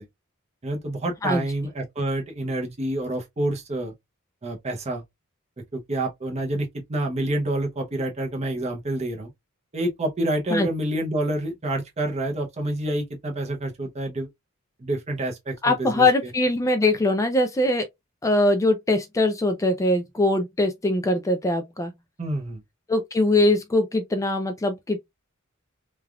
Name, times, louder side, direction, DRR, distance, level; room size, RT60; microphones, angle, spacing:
voice 1, 0.6-3.9 4.4-5.0 5.7-9.3 9.7-14.3 14.8-16.3 22.2-22.6, right 1 dB, 30° right, 0.7 m, -28 dB
voice 2, 15.6-17.9 18.2-21.9 22.9-25.0, left 2 dB, 15° left, 0.3 m, -22 dB
3.3 x 2.3 x 2.2 m
head